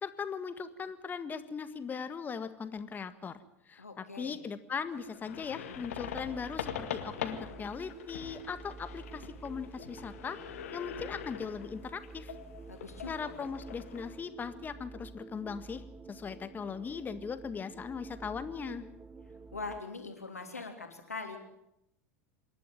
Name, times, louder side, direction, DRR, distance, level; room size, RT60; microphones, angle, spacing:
voice 1, 0.0-3.4 3.7-10.4 10.7-12.3 13.1-18.9, left 6 dB, 25° left, 11 dB, 1.7 m, -39 dB
voice 2, 3.8-4.4 12.7-13.5 19.5-21.4, left 3 dB, 90° left, 4 dB, 3.4 m, -42 dB
sound 1, 4.9-14.2, left 9 dB, 70° left, 2.0 m, -43 dB
sound 2, 5.5-19.8, right 4 dB, 15° right, 1.0 m, -50 dB
26.5 x 11.5 x 9.2 m, 0.82 s
figure-of-eight pair, 85°, 8 cm